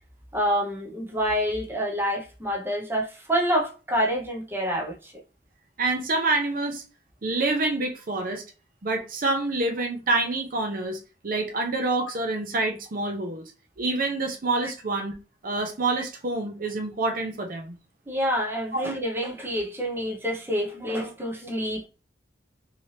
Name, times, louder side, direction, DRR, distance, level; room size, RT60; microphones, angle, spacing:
voice 1, 0.3-5.1 14.6-14.7 18.1-21.9, equal, 15° right, 0.7 m, -27 dB
voice 2, 5.8-6.8 7.2-8.4 8.8-13.4 13.8-15.2 15.4-17.8 18.7-18.8, right 2 dB, 50° right, 0.7 m, -27 dB
3.3 x 2.8 x 2.8 m
head